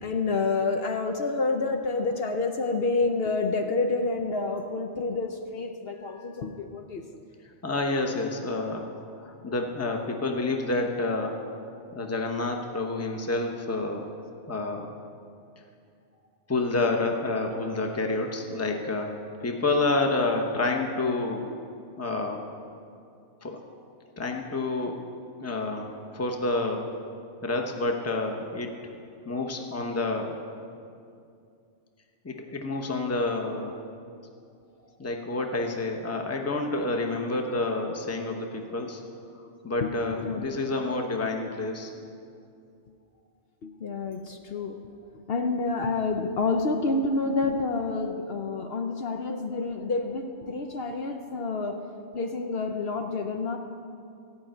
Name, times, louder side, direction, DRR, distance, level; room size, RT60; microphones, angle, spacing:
voice 1, 0.0-7.0 39.8-40.5 43.6-44.9 45.3-51.8 52.1-53.6, left 3 dB, 60° left, 4 dB, 0.9 m, -28 dB
voice 2, 7.6-8.9 9.2-11.4 11.9-14.1 14.5-14.9 16.5-19.2 19.4-21.5 22.0-22.4 23.4-23.6 24.2-25.0 25.4-26.9 27.4-28.7 29.3-30.3 32.2-33.8 35.0-39.0 39.6-41.9, left 2 dB, 15° left, 2 dB, 0.9 m, -28 dB
14.5 x 5.5 x 8.9 m, 2.4 s
omnidirectional pair, 1.2 m